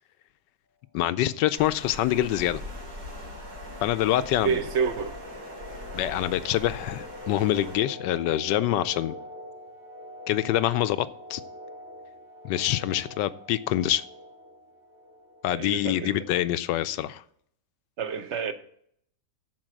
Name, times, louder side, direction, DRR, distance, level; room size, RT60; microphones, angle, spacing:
voice 1, 0.9-2.6 3.8-4.6 5.9-9.1 10.3-11.4 12.4-14.0 15.4-17.2, left 13 dB, 85° left, 1.3 m, -25 dB
sound 1, 1.4-15.9, left 1 dB, 30° right, 2.5 m, -44 dB
Water, 1.6-7.8, left 1 dB, 90° right, 4.0 m, -41 dB
voice 2, 4.4-5.1 15.5-16.2 18.0-18.5, right 6 dB, 50° right, 0.9 m, -28 dB
14.0 x 4.6 x 6.1 m
omnidirectional pair, 1.9 m